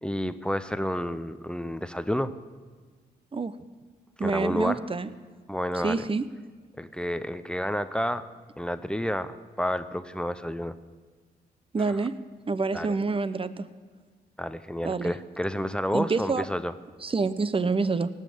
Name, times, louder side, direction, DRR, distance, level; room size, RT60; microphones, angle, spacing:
voice 1, 0.0-2.3 4.2-4.8 5.5-6.0 6.8-8.3 8.6-10.8 11.9-12.0 12.7-13.0 14.4-16.7, equal, 5° left, 12 dB, 0.7 m, -30 dB
voice 2, 4.2-5.1 5.7-6.2 11.7-12.1 12.5-13.7 14.8-15.1 15.9-16.4 17.0-18.1, right 4 dB, 30° right, 14 dB, 0.8 m, -27 dB
18.0 x 7.2 x 8.5 m, 1.5 s
cardioid pair, 65°, 18 cm